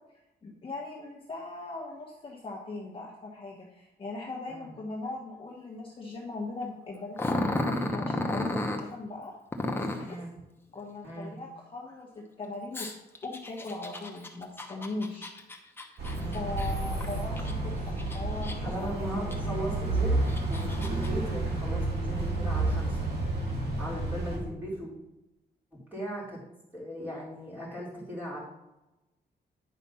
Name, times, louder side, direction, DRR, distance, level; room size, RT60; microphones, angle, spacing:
voice 1, 0.4-9.3 9.7-10.2 10.7-12.9 13.2-15.3 16.0-18.9, left 2 dB, 30° left, -2 dB, 1.2 m, -39 dB
Growling, 7.2-8.8 9.5-10.1 12.7-17.5 18.0-18.8 19.3-19.4 20.1-21.1, left 1 dB, 15° left, 0.9 m, -33 dB
voice 2, 10.0-10.3 11.0-11.3 16.1-16.7 18.6-23.0 23.8-24.9 25.9-26.4 26.7-28.4, equal, 10° right, -7 dB, 3.7 m, -38 dB
sound 1, 16.0-24.4, right 2 dB, 70° right, 3.0 m, -30 dB
9.9 x 5.0 x 5.6 m, 0.94 s
wide cardioid pair, 175°, 17 cm